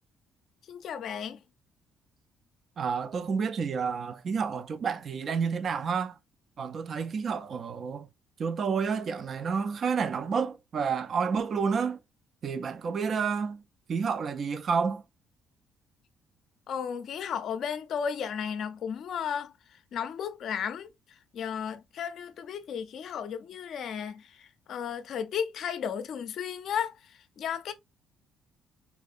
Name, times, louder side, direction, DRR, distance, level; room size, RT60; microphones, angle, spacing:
voice 1, 0.7-1.4 16.7-20.9 21.3-27.7, left 7 dB, 50° left, 0.5 m, -34 dB
voice 2, 2.8-6.1 6.6-8.1 8.4-12.0 12.4-13.6 13.9-15.0, right 6 dB, 35° right, 0.3 m, -30 dB
4.3 x 2.6 x 2.4 m
cardioid pair, 165°, 0 cm